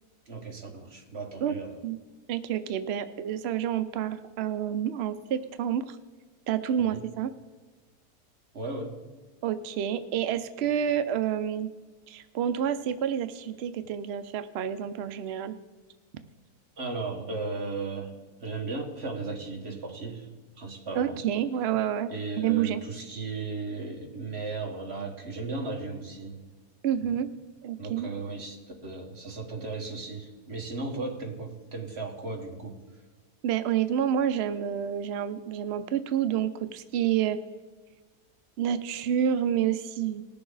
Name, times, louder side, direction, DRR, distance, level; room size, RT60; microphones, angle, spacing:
voice 1, 0.3-1.8 6.8-7.0 8.5-9.0 16.8-20.3 20.6-21.2 22.1-26.4 27.8-32.8, right 3 dB, 45° right, 1 dB, 1.7 m, -36 dB
voice 2, 2.3-6.0 6.5-7.3 9.4-11.7 12.1-15.6 20.9-22.1 22.4-22.8 26.8-27.3 27.6-28.1 33.4-37.4 38.6-40.2, right 9 dB, 75° right, 11 dB, 0.6 m, -28 dB
19.5 x 6.9 x 3.9 m, 1.3 s
omnidirectional pair, 1.7 m